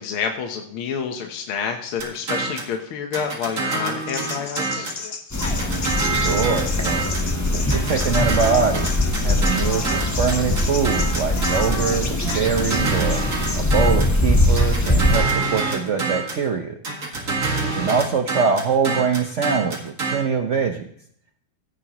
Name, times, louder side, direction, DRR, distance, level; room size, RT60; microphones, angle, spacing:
voice 1, 0.0-4.9 11.9-12.0 17.8-17.9, left 6 dB, 75° left, 4 dB, 1.9 m, -28 dB
sound 1, 2.0-2.7 3.1-5.0 5.4-7.3 7.7-11.9 12.3-14.2 14.6-16.5 16.8-20.2, right 3 dB, 40° right, 2.2 m, -26 dB
sound 2, 4.1-12.4, left 4 dB, 45° left, 0.8 m, -33 dB
sound 3, 5.3-15.2, left 1 dB, 20° left, 0.4 m, -22 dB
voice 2, 6.0-7.1 7.5-8.9 9.1-13.2 13.6-16.8 17.6-20.8, right 6 dB, 80° right, 5 dB, 0.6 m, -23 dB
15.5 x 9.7 x 3.0 m, 0.65 s
omnidirectional pair, 2.4 m